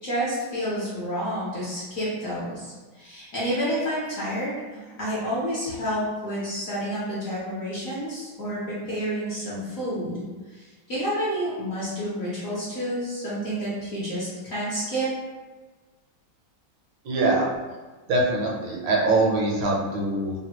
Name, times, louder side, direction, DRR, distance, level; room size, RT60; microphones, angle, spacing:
voice 1, 0.0-10.2 10.5-15.1, equal, 55° left, -9 dB, 1.0 m, -29 dB
voice 2, 17.0-17.5 18.1-20.3, right 2 dB, 75° right, -3 dB, 1.4 m, -23 dB
3.3 x 2.2 x 2.8 m, 1.3 s
omnidirectional pair, 2.2 m